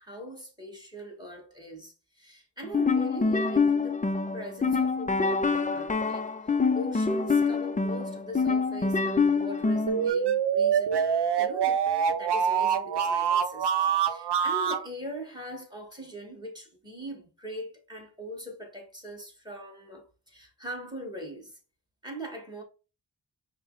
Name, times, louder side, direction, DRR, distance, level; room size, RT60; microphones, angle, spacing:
voice 1, 0.0-4.0 4.3-6.3 6.7-11.1 11.4-11.8 12.1-21.6 22.0-22.6, equal, 10° right, 1.6 m, -41 dB
sound 1, 2.6-10.1, left 4 dB, 20° left, 0.4 m, -26 dB
sound 2, 9.9-14.9, right 7 dB, 75° right, 0.6 m, -25 dB
5.5 x 2.1 x 3.9 m
wide cardioid pair, 55°, 41 cm